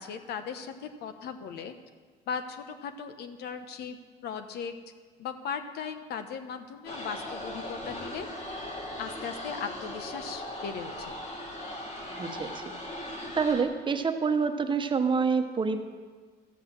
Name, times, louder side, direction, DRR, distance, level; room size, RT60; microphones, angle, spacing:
voice 1, 0.0-1.7 2.3-4.0 4.2-4.7 5.2-8.3 9.0-11.2, left 6 dB, 75° left, 8 dB, 1.1 m, -38 dB
sound 1, 6.9-13.6, left 1 dB, 45° left, 2.4 m, -39 dB
voice 2, 12.1-12.7 13.3-15.8, right 5 dB, 30° right, 6 dB, 1.0 m, -27 dB
13.0 x 7.8 x 7.7 m, 1.5 s
cardioid pair, 110°, 17 cm